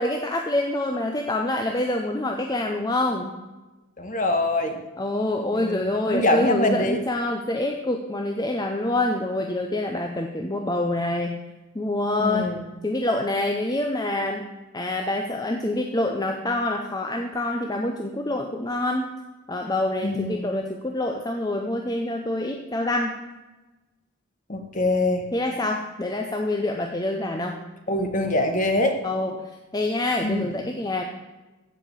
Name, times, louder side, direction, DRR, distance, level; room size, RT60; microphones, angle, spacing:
voice 1, 0.0-3.3 4.6-11.4 11.7-12.5 12.8-14.5 14.7-19.1 19.5-23.2 25.3-27.6 29.0-29.3 29.7-31.0, left 1 dB, 20° left, 3 dB, 0.7 m, -26 dB
voice 2, 4.0-4.8 5.5-7.0 12.2-12.7 20.0-20.5 24.5-25.2 27.9-29.0 30.2-30.5, left 1 dB, 35° left, 5 dB, 1.4 m, -24 dB
15.0 x 5.2 x 7.4 m, 1.1 s
head